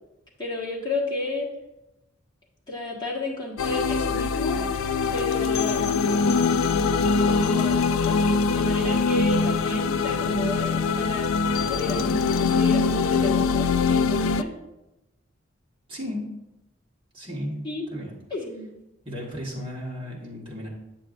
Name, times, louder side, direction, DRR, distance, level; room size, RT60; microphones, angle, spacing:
voice 1, 0.4-1.5 2.7-4.6 5.1-5.8 7.3-7.8 8.0-8.1 8.5-14.5 17.6-17.9 18.3-18.7, left 2 dB, 20° left, -5 dB, 1.5 m, -31 dB
sound 1, 3.6-14.4, left 5 dB, 85° left, 0.3 m, -23 dB
voice 2, 15.9-16.3 17.1-17.6 17.9-18.2 19.0-20.7, left 1 dB, 25° right, -4 dB, 1.6 m, -34 dB
8.4 x 6.8 x 2.6 m, 0.94 s
head